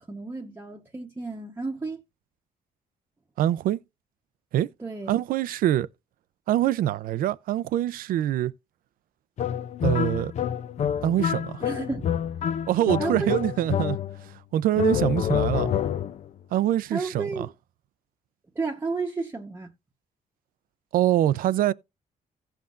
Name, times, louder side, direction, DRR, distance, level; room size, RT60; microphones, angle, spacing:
voice 1, 0.0-2.0 4.8-5.2 11.6-12.1 13.0-13.3 16.9-17.5 18.5-19.7, right 3 dB, 15° right, 1.0 m, -32 dB
voice 2, 3.4-3.8 4.5-4.7 5.1-5.9 6.5-8.5 9.8-10.3 11.0-11.6 12.7-14.0 14.2-15.7 16.5-17.5 20.9-21.7, right 12 dB, 80° right, 0.5 m, -24 dB
sound 1, 9.4-14.3 14.8-16.3, left 9 dB, 50° left, 0.5 m, -27 dB
16.5 x 5.8 x 2.5 m
cardioid pair, 135°, 15 cm